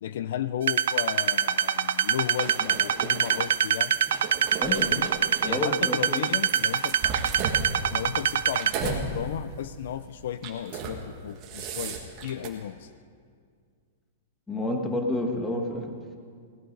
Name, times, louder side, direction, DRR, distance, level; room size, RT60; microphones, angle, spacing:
voice 1, 0.0-4.0 4.7-5.1 5.4-7.0 7.9-12.9, left 10 dB, 60° left, 14 dB, 0.4 m, -34 dB
sound 1, 0.7-8.7, right 9 dB, 70° right, 0.6 m, -24 dB
sound 2, 2.4-3.4 4.0-5.5 6.2-9.1 9.5-9.7 10.4-11.0 11.3-12.5, right 5 dB, 25° right, 1.6 m, -35 dB
voice 2, 4.6-5.0 5.4-6.3 14.5-16.2, left 1 dB, 5° left, 2 dB, 1.4 m, -30 dB
18.0 x 13.0 x 5.3 m, 2.1 s
supercardioid pair, 170°, 0 cm